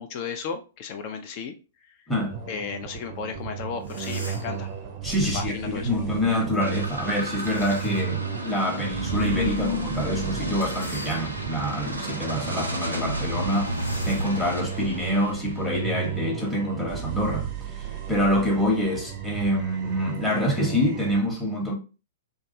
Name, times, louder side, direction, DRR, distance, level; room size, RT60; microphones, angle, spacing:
voice 1, 0.0-1.6 2.5-4.7 5.3-6.0, left 6 dB, 40° left, 0.3 m, -34 dB
sound 1, 2.3-21.2, right 8 dB, 35° right, 0.5 m, -34 dB
sound 2, 3.4-3.5 3.8-4.7 7.3-8.2 8.7-8.8 10.5-11.6 12.2-12.4 12.6-12.8 13.6-16.1, left 1 dB, 85° left, 0.8 m, -44 dB
voice 2, 5.0-13.8 14.0-21.7, equal, 10° left, 0.8 m, -26 dB
sound 3, 6.6-16.1, left 1 dB, 90° right, 0.6 m, -33 dB
2.3 x 2.2 x 2.6 m
figure-of-eight pair, 110°, 0 cm